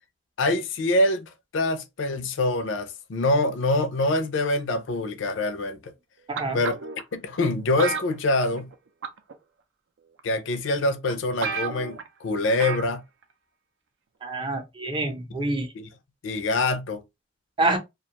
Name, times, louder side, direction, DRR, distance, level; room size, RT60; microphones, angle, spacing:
voice 1, 0.4-5.9 6.5-6.8 7.1-8.7 10.2-13.0 15.7-15.9 16.2-17.0, left 2 dB, 70° left, 0.5 m, -25 dB
voice 2, 6.3-6.6 14.2-15.7 17.6-17.8, right 2 dB, 25° right, 0.5 m, -26 dB
sound 1, 6.4-7.0 7.8-8.7 9.0-9.3 10.2-10.3 10.8-10.9 11.1-11.2 11.4-12.1 12.6-12.9 13.2-13.3, right 5 dB, 70° right, 0.5 m, -31 dB
2.4 x 2.2 x 2.8 m
head